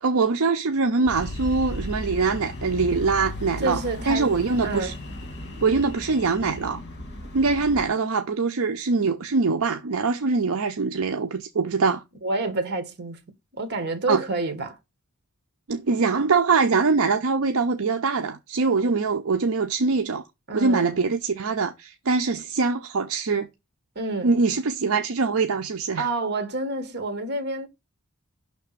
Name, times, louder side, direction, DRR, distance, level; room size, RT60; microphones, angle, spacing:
voice 1, 0.0-4.9 5.6-6.8 7.3-12.0 14.1-14.2 15.7-20.2 20.5-23.5 24.2-26.1, right 4 dB, 70° right, 0.6 m, -23 dB
sound 1, 1.1-7.9, left 1 dB, 50° left, 1.6 m, -35 dB
voice 2, 3.6-4.3 4.6-4.9 12.2-13.2 13.5-14.8 20.5-21.0 23.9-24.3 26.0-27.7, right 2 dB, 50° right, 1.5 m, -28 dB
5.9 x 3.5 x 5.6 m
head